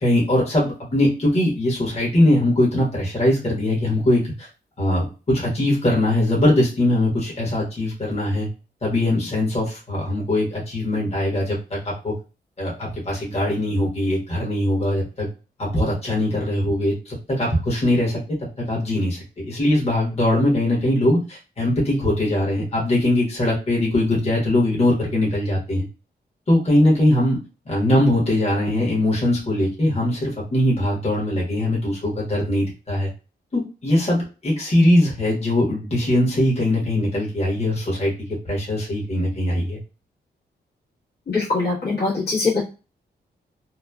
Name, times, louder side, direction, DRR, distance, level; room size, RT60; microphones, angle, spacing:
voice 1, 0.0-4.5 4.8-8.5 8.8-12.1 12.6-15.3 15.6-18.4 18.7-25.8 26.5-27.4 27.7-33.1 33.5-39.8, left 1 dB, 35° left, -5 dB, 1.2 m, -21 dB
voice 2, 41.3-42.6, left 3 dB, 65° left, -7 dB, 1.4 m, -22 dB
2.9 x 2.2 x 2.2 m, 0.32 s
cardioid pair, 95°, 18 cm